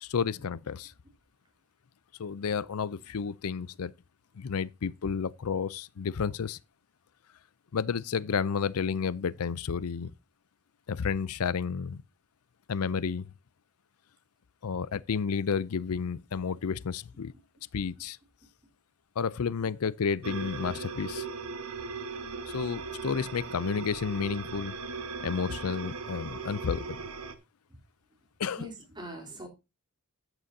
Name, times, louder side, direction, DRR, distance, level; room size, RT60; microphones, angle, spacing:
voice 1, 0.0-0.9 2.2-3.9 4.4-6.6 7.7-10.1 10.9-12.0 12.7-13.3 14.6-17.3 17.7-18.2 19.2-21.3 22.5-24.7 25.2-27.0 28.4-28.7, left 6 dB, 75° left, 0.5 m, -31 dB
sound 1, 20.2-27.3, right 4 dB, 70° right, 1.5 m, -38 dB
voice 2, 28.5-29.5, equal, 20° right, 3.4 m, -42 dB
12.5 x 9.0 x 2.7 m
head